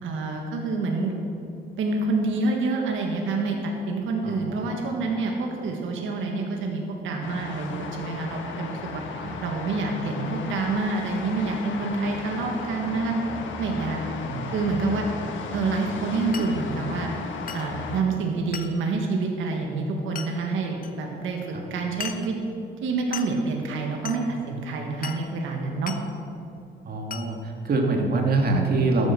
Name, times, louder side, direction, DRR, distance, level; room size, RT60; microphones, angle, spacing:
voice 1, 0.0-1.1 1.8-9.0 9.4-13.1 13.6-14.0 14.5-15.1 15.5-17.1 17.5-21.4 21.7-22.3 22.8-25.9, right 3 dB, 80° right, 1 dB, 1.6 m, -27 dB
voice 2, 4.2-4.6 9.2-9.3 14.3-14.5 21.5-21.6 26.8-29.1, right 2 dB, 50° right, 1 dB, 2.2 m, -24 dB
sound 1, 7.2-18.0, left 4 dB, 75° left, 1.3 m, -35 dB
Glass, 16.3-16.6 17.5-17.7 18.5-18.8 20.2-20.3 20.8-20.9 22.0-22.3 23.1-23.4 24.1-24.2 25.0-25.3 25.9-26.1 27.1-27.3, left 7 dB, 45° left, 1.0 m, -36 dB
13.0 x 9.0 x 6.1 m, 2.6 s
cardioid pair, 90°, 20 cm